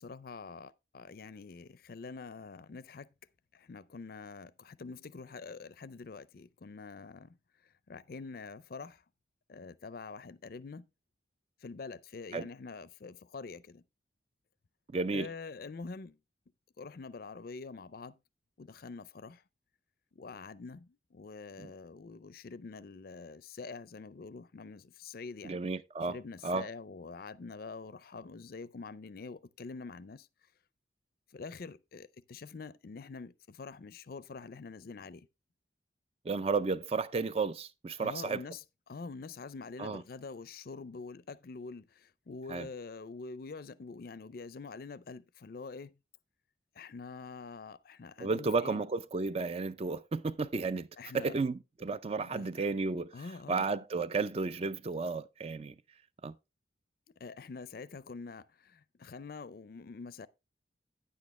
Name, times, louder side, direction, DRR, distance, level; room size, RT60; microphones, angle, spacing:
voice 1, 0.0-3.1 3.5-7.4 7.6-9.0 9.5-10.9 11.6-13.8 15.1-16.2 16.8-18.2 18.6-19.4 20.1-25.6 26.1-30.3 31.3-35.3 38.0-46.0 46.7-48.8 51.0-51.3 52.2-52.7 53.1-53.7 57.2-60.3, left 4 dB, 55° left, 0.5 m, -45 dB
voice 2, 14.9-15.3 21.6-21.7 25.4-26.2 26.4-26.7 36.2-38.4 39.8-40.0 42.5-42.7 48.2-50.9 51.1-53.2 53.5-55.8 56.2-56.3, right 4 dB, 35° right, 0.4 m, -33 dB
9.7 x 8.4 x 3.1 m
head